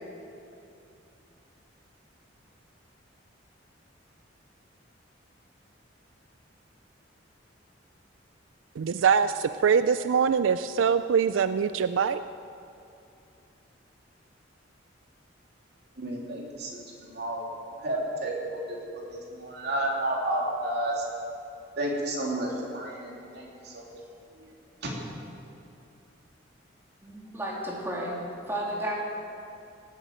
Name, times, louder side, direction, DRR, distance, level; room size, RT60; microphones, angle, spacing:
voice 1, 8.8-12.2, right 6 dB, 85° right, 12 dB, 0.4 m, -23 dB
voice 2, 16.0-17.5 17.8-18.8 19.1-21.0 21.8-23.8 24.8-24.9, right 1 dB, 55° right, -2 dB, 3.1 m, -31 dB
voice 3, 27.0-28.2 28.5-29.0, right 1 dB, 10° right, -3 dB, 2.7 m, -32 dB
18.5 x 8.9 x 7.8 m, 2.6 s
head